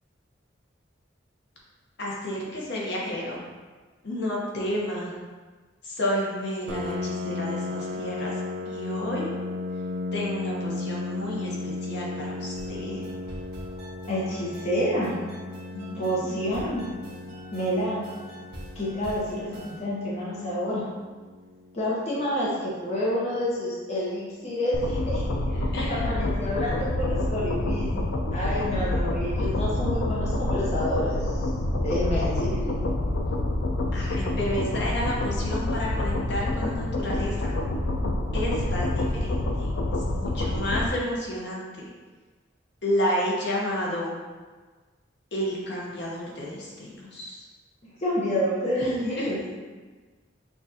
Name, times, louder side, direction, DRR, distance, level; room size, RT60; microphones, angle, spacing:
voice 1, 2.0-3.4 4.0-5.1 5.8-8.3 8.7-9.3 10.1-13.1 15.7-16.4 25.7-26.1 33.9-37.5 38.3-39.7 40.1-41.9 42.8-44.1 45.3-47.4 48.8-49.3, equal, 65° left, -4 dB, 0.9 m, -31 dB
Piano, 6.7-22.1, left 3 dB, 75° right, 0.4 m, -35 dB
sound 1, 12.5-19.8, right 1 dB, 60° right, 1.3 m, -45 dB
voice 2, 14.1-15.1 15.9-16.9 17.5-18.0 18.7-20.8 21.7-27.9 28.3-31.5 31.8-32.7 47.8-49.4, equal, 35° left, -7 dB, 0.7 m, -29 dB
sound 2, 24.7-40.9, left 1 dB, 85° left, 0.4 m, -27 dB
5.9 x 2.4 x 2.7 m, 1.4 s
head